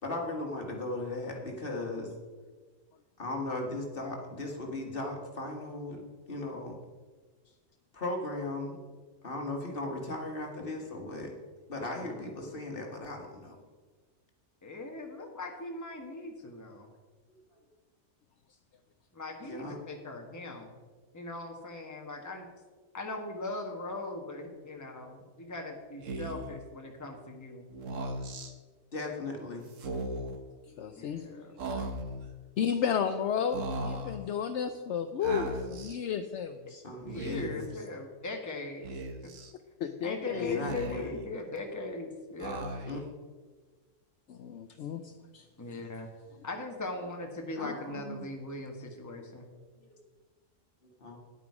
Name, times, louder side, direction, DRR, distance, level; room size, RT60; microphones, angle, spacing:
voice 1, 0.0-2.1 3.2-6.0 6.3-6.8 7.9-8.8 9.2-11.3 11.7-13.6 19.5-19.8 28.9-29.6 36.7-37.7 40.3-41.1 42.9-43.0 46.3-46.4 47.6-48.3 51.0-51.2, left 2 dB, 45° left, 1 dB, 1.9 m, -37 dB
voice 2, 11.9-12.2 14.6-16.9 19.1-20.7 21.1-22.5 22.9-27.7 31.0-31.9 36.9-39.3 40.0-42.7 45.6-46.1 46.4-49.5, left 2 dB, 15° left, 2 dB, 1.2 m, -40 dB
Speech, 26.0-26.5 27.7-28.5 29.7-30.4 31.6-32.3 33.5-34.2 35.2-36.0 37.0-37.7 38.8-39.5 40.4-41.2 42.4-43.1, right 2 dB, 75° right, 1.4 m, -37 dB
voice 3, 30.8-31.4 31.7-31.8 32.6-36.6 39.8-40.6 44.3-45.4, left 7 dB, 70° left, 8 dB, 0.9 m, -32 dB
10.5 x 8.7 x 4.8 m, 1.4 s
omnidirectional pair, 1.3 m